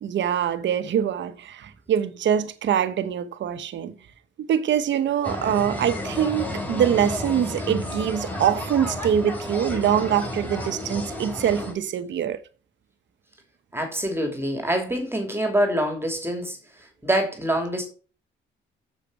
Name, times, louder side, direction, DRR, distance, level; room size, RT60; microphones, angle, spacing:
voice 1, 0.0-3.9 4.4-12.4, right 9 dB, 65° right, 1.2 m, -24 dB
sound 1, 5.2-11.7, left 1 dB, 10° left, 3.8 m, -32 dB
voice 2, 13.7-17.8, right 1 dB, 10° right, 2.8 m, -25 dB
7.6 x 7.0 x 4.9 m
cardioid pair, 90°, 20 cm